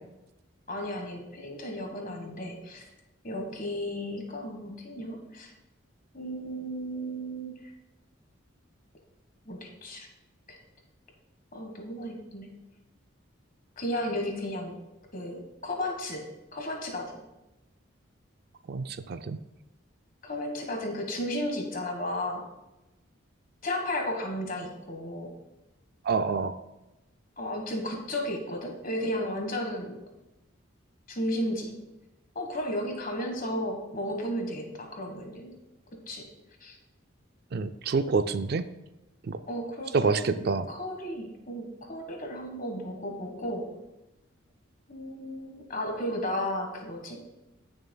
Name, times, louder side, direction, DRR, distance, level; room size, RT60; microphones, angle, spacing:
voice 1, 0.7-2.9 3.2-5.5 6.1-7.7 9.4-10.1 10.5-10.6 11.5-12.5 13.8-14.7 15.1-16.2 16.5-17.1 20.2-22.4 23.6-25.3 27.4-30.0 31.1-31.7 32.3-35.5 36.1-36.2 36.6-36.8 39.5-40.4 40.7-43.6 44.9-47.2, left 1 dB, 40° left, 3 dB, 1.4 m, -34 dB
voice 2, 18.7-19.4 26.0-26.6 37.5-38.6 39.3-39.4 39.9-40.7, right 4 dB, 50° right, 11 dB, 0.4 m, -27 dB
14.5 x 6.6 x 2.3 m, 0.97 s
head